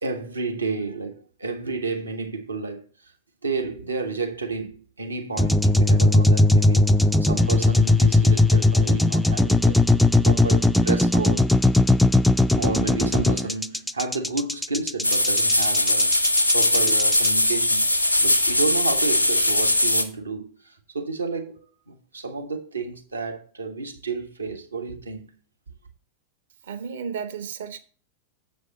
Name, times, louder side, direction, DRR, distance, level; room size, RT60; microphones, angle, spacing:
voice 1, 0.0-2.8 3.4-9.8 10.2-11.5 12.5-16.2 16.5-17.9 18.2-25.3, right 4 dB, 80° right, 1.5 m, -31 dB
sound 1, 5.4-17.3, left 2 dB, ahead, 0.4 m, -18 dB
sound 2, 15.0-20.0, left 1 dB, 85° left, 0.8 m, -20 dB
voice 2, 26.7-27.8, right 6 dB, 60° right, 1.1 m, -33 dB
7.7 x 5.1 x 7.4 m
figure-of-eight pair, 90°, 0 cm